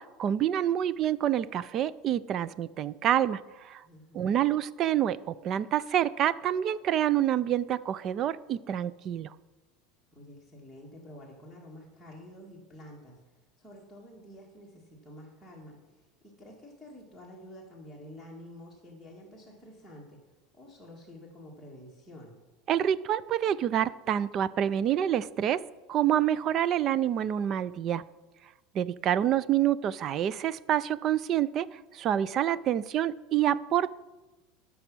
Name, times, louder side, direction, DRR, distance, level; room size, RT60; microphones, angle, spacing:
voice 1, 0.0-3.8 4.1-9.3 22.7-25.6 25.9-28.0 28.7-33.9, right 10 dB, 35° right, 18 dB, 0.4 m, -27 dB
voice 2, 3.8-4.5 10.1-20.2 20.5-22.4, left 1 dB, ahead, -6 dB, 1.9 m, -49 dB
13.0 x 6.1 x 6.1 m, 1.1 s
supercardioid pair, 155°, 0 cm